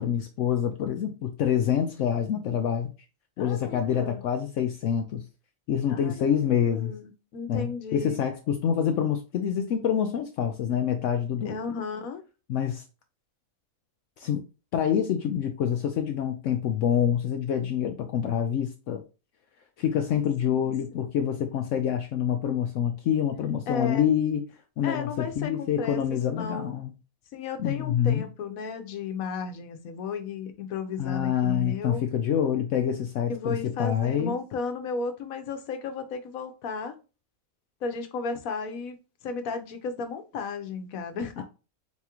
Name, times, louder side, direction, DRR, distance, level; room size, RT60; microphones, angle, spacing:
voice 1, 0.0-2.9 3.4-5.2 5.7-6.9 7.5-11.6 12.5-12.8 14.2-14.4 14.7-19.0 19.8-24.5 24.8-26.9 27.6-28.2 31.0-34.4 41.4-41.5, left 9 dB, 70° left, 0.9 m, -26 dB
voice 2, 3.4-4.2 5.9-8.2 11.4-12.2 20.5-21.2 23.7-24.1 24.8-26.8 27.3-32.0 33.3-36.9 37.8-39.0 39.2-41.3, left 4 dB, 85° left, 1.2 m, -34 dB
4.1 x 3.6 x 2.9 m
omnidirectional pair, 1.4 m